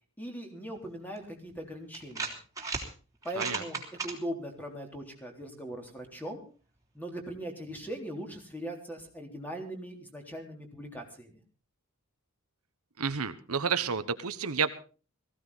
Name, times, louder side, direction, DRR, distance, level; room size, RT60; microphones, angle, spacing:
voice 1, 0.2-2.4 3.2-3.8 4.0-6.4 6.9-11.4, right 1 dB, 10° left, 3 dB, 3.6 m, -40 dB
sound 1, 1.2-1.3 1.9-2.9 3.2-4.1, right 4 dB, 15° right, 3.2 m, -35 dB
voice 2, 13.0-14.7, right 6 dB, 85° right, 10 dB, 1.2 m, -30 dB
18.5 x 15.5 x 4.1 m, 0.37 s
head